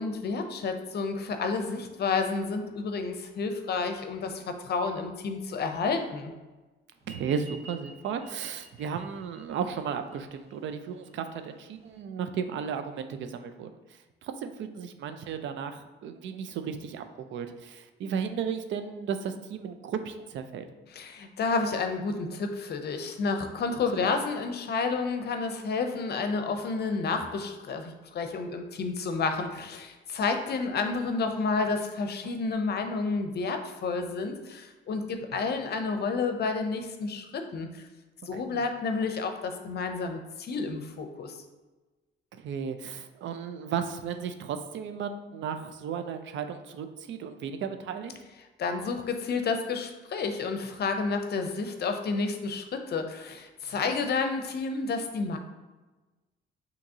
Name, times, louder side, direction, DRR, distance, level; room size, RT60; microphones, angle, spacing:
voice 1, 0.0-6.3 20.9-37.9 38.3-41.3 48.6-55.4, left 4 dB, 55° left, 6 dB, 0.6 m, -30 dB
sound 1, 7.0-12.0, right 2 dB, 35° right, 0.8 m, -52 dB
voice 2, 7.1-13.8 14.2-20.7 32.2-32.3 38.3-38.6 42.3-48.1, right 7 dB, 70° right, 9 dB, 0.4 m, -34 dB
5.8 x 2.9 x 2.8 m, 1.2 s
cardioid pair, 90°, 20 cm